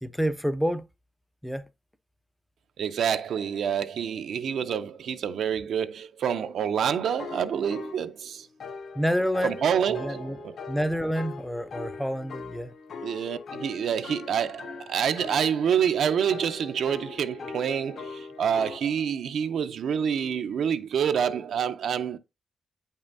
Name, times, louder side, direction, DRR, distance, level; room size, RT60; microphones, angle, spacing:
voice 1, 0.0-0.8 1.4-1.7 8.9-9.6 9.9-10.4 10.7-12.7, equal, ahead, 0.4 m, -28 dB
voice 2, 2.8-8.5 9.4-10.6 13.0-22.2, right 8 dB, 75° right, 0.5 m, -27 dB
sound 1, 6.9-8.1 8.6-18.8, left 5 dB, 60° left, 0.7 m, -41 dB
8.8 x 5.4 x 2.5 m
wide cardioid pair, 160°, 0 cm